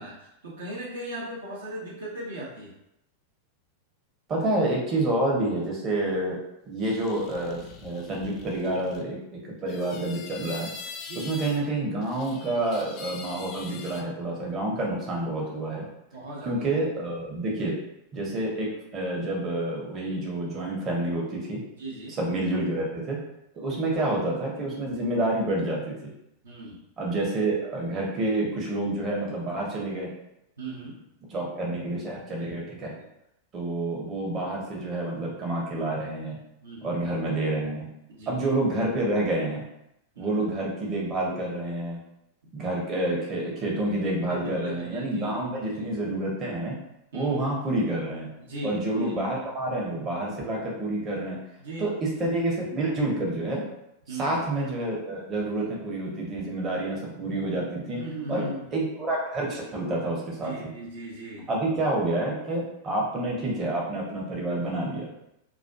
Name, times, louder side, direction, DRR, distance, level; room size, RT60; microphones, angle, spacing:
voice 1, 0.0-2.7 11.1-11.4 16.1-16.6 21.8-22.2 26.4-26.8 30.6-31.0 32.3-32.5 33.0-33.1 36.6-37.0 38.1-38.4 40.1-40.4 44.3-45.9 47.1-47.4 48.4-49.1 51.6-52.0 54.1-54.4 57.9-58.7 60.4-61.5 64.9-65.0, right 1 dB, 70° right, -5 dB, 0.6 m, -38 dB
voice 2, 4.3-6.4 6.7-10.7 11.2-15.9 16.5-17.7 18.1-18.7 18.9-21.6 22.2-23.2 23.6-25.9 27.0-30.1 31.3-32.9 33.5-36.4 36.8-37.9 38.3-39.6 40.2-42.0 42.5-46.7 47.1-48.3 48.6-51.4 51.8-51.9 52.2-53.6 54.1-58.0 58.3-58.4 58.7-60.5 61.5-65.1, right 1 dB, 30° right, -3 dB, 0.8 m, -28 dB
sound 1, 6.8-9.0 9.7-11.7 12.0-14.0, left 5 dB, 40° left, 0.3 m, -43 dB
2.4 x 2.3 x 2.2 m, 0.83 s
figure-of-eight pair, 90°, 0 cm